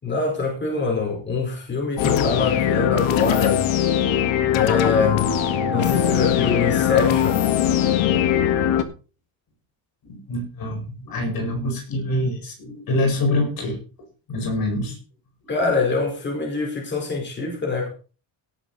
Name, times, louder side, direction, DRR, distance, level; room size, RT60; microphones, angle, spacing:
voice 1, 0.0-3.7 4.5-5.3 5.7-7.5 15.5-17.9, left 4 dB, 25° left, 4.5 m, -24 dB
sound 1, 2.0-8.8, left 9 dB, 85° left, 1.8 m, -21 dB
voice 2, 10.0-13.8 14.3-15.0, left 1 dB, 50° left, 5.0 m, -25 dB
17.5 x 7.1 x 4.2 m
cardioid pair, 135°, 45 cm